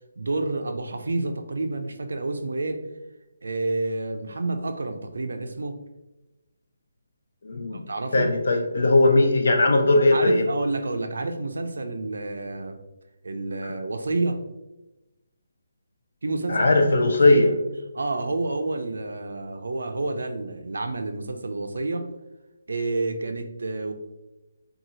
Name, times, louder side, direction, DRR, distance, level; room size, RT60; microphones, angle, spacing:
voice 1, 0.2-2.8 3.4-5.8 7.9-8.3 10.1-12.8 13.2-14.4 16.2-16.7 17.0-17.5 17.9-22.1 22.7-23.9, right 2 dB, 75° right, 6 dB, 0.4 m, -29 dB
voice 2, 7.4-7.8 8.1-10.4 16.5-17.5, left 2 dB, 55° left, 3 dB, 0.4 m, -19 dB
2.6 x 2.3 x 2.8 m, 0.98 s
hypercardioid pair, 175°, 0 cm